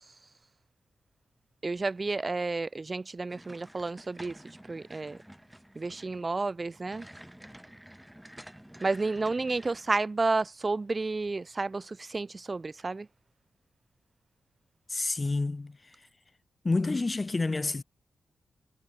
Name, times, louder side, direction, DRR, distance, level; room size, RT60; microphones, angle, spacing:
voice 1, 1.6-4.4 4.7-5.2 5.8-7.1 8.8-13.1, right 3 dB, 30° right, 2.4 m, -31 dB
sound 1, 3.3-10.0, equal, 5° right, 3.3 m, -50 dB
voice 2, 14.9-16.1 16.6-17.8, left 3 dB, 30° left, 0.8 m, -29 dB
wide cardioid pair, 100°, 0 cm